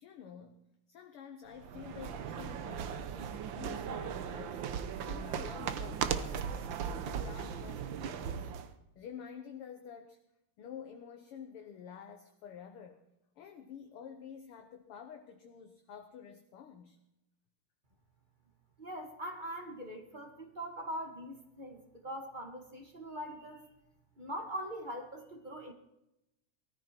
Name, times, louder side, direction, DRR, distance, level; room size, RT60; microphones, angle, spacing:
voice 1, 0.0-8.5 8.9-10.2 10.6-13.0 13.4-17.0, left 7 dB, 60° left, 5 dB, 1.6 m, -49 dB
sound 1, 1.5-8.7, right 7 dB, 80° right, 1.0 m, -38 dB
voice 2, 18.8-23.6 24.2-25.7, equal, 20° right, 4 dB, 1.3 m, -42 dB
19.0 x 13.5 x 4.5 m, 0.88 s
omnidirectional pair, 3.4 m